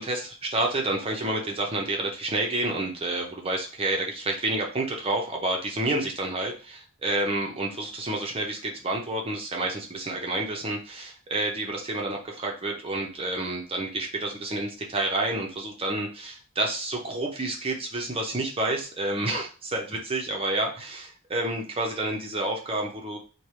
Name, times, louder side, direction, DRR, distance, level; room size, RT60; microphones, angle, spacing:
voice 1, 0.0-23.2, right 2 dB, 25° right, 0 dB, 0.7 m, -29 dB
3.3 x 2.2 x 4.3 m, 0.36 s
head